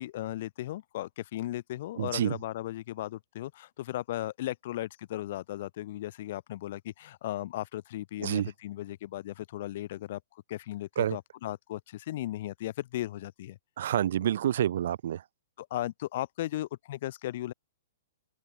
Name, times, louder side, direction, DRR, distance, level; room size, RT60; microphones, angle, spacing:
voice 1, 0.0-13.6 15.6-17.5, left 14 dB, 55° left, 7.5 m, -36 dB
voice 2, 2.0-2.4 8.2-8.5 11.0-11.2 13.8-15.2, right 10 dB, 60° right, 2.3 m, -28 dB
open air
hypercardioid pair, 120°, 0 cm